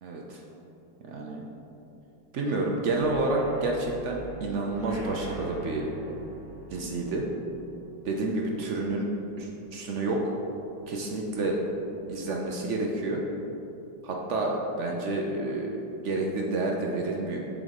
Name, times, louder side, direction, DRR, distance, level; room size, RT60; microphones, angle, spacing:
voice 1, 0.0-0.4 1.0-1.4 2.3-5.9 6.7-7.2 8.0-9.1 9.4-10.4 10.9-11.6 12.1-13.2 14.0-17.4, right 2 dB, 70° right, 0 dB, 0.6 m, -29 dB
sound 1, 2.9-10.6 10.9-11.3 11.6-11.7 12.1-12.2, right 1 dB, 30° right, 1.7 m, -43 dB
7.0 x 3.7 x 5.2 m, 2.8 s
omnidirectional pair, 1.9 m